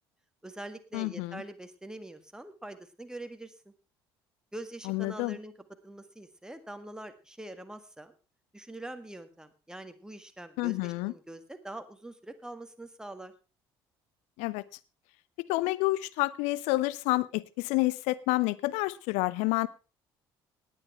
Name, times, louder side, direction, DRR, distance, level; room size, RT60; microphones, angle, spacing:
voice 1, 0.4-3.7 4.5-5.5 5.8-8.1 8.5-13.3, right 1 dB, 5° right, 9 dB, 1.8 m, -44 dB
voice 2, 0.9-1.4 4.9-5.4 10.6-11.1 14.4-14.6 15.4-19.7, left 20 dB, 60° left, 19 dB, 0.7 m, -29 dB
18.5 x 8.8 x 4.3 m, 0.32 s
figure-of-eight pair, 55°, 13 cm